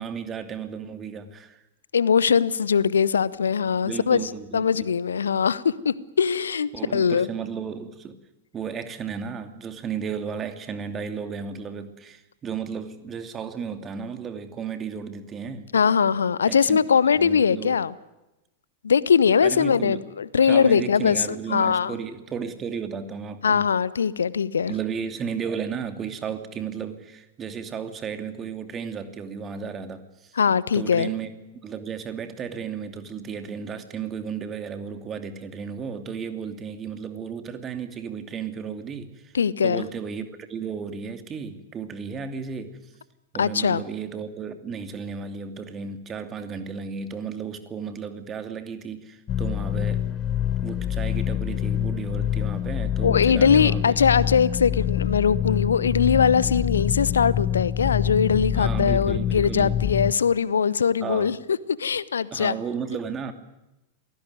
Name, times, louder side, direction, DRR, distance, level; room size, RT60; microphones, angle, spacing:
voice 1, 0.0-1.6 3.8-4.9 6.7-8.2 8.5-15.7 16.5-16.8 17.2-17.8 19.4-20.0 20.4-23.7 24.6-30.3 30.7-31.3 31.6-39.3 39.6-42.8 43.3-50.2 50.6-53.9 58.5-59.7 61.0-61.3 62.3-63.3, right 6 dB, 25° right, 8 dB, 2.7 m, -34 dB
voice 2, 1.9-7.3 15.7-17.9 18.8-21.9 23.4-24.7 30.4-31.1 39.3-39.8 43.4-43.8 53.0-61.4 61.8-62.5, left 6 dB, 70° left, 19 dB, 1.0 m, -21 dB
sound 1, 49.3-60.1, left 11 dB, 30° left, 0.8 m, -26 dB
27.5 x 18.5 x 9.6 m, 0.97 s
figure-of-eight pair, 90°, 0 cm